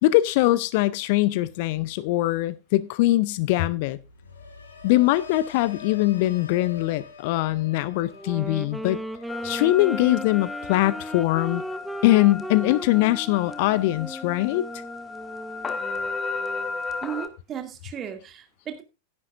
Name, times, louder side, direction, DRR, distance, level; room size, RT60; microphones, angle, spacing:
voice 1, 0.0-4.0 4.8-9.0 9.4-11.6 12.0-14.7, left 17 dB, 50° left, 0.6 m, -22 dB
sound 1, 3.9-13.9 14.3-14.7, left 6 dB, 70° left, 2.2 m, -47 dB
Wind instrument woodwind instrument, 8.1-16.8, right 1 dB, 5° right, 0.6 m, -37 dB
sound 2, 9.3-17.3, left 4 dB, 20° left, 1.4 m, -35 dB
voice 2, 17.0-18.8, right 9 dB, 30° right, 2.2 m, -35 dB
15.0 x 11.0 x 2.5 m
figure-of-eight pair, 90°, 0 cm